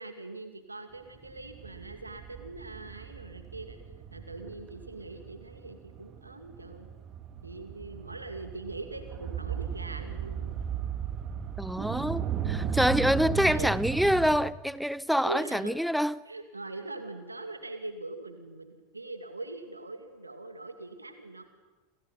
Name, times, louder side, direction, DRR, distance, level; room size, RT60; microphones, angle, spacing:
voice 1, 0.0-3.8 4.1-6.9 7.4-10.6 13.4-13.8 15.2-15.7 16.3-21.4, right 2 dB, 85° right, 8 dB, 2.4 m, -42 dB
sound 1, 1.2-14.4, right 8 dB, 35° right, 2.8 m, -36 dB
voice 2, 11.6-16.1, equal, ahead, 20 dB, 0.8 m, -26 dB
28.5 x 28.0 x 5.7 m, 1.2 s
figure-of-eight pair, 85°, 0 cm